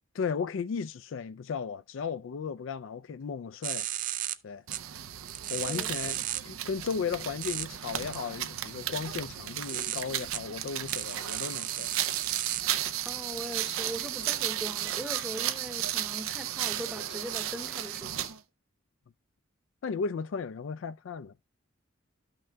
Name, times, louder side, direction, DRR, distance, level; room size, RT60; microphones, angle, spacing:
voice 1, 0.2-3.9 4.4-4.6 5.5-11.9 19.8-21.3, left 5 dB, 65° left, 0.4 m, -35 dB
sound 1, 3.6-4.4 4.7-4.8 5.3-6.4 7.4-7.7 8.1-8.2 9.3-10.4 10.9-12.6, right 12 dB, 40° right, 0.4 m, -34 dB
sound 2, 4.7-18.4, right 12 dB, 90° right, 0.6 m, -34 dB
voice 2, 13.0-18.3, equal, 5° right, 0.8 m, -40 dB
13.0 x 5.9 x 2.2 m
head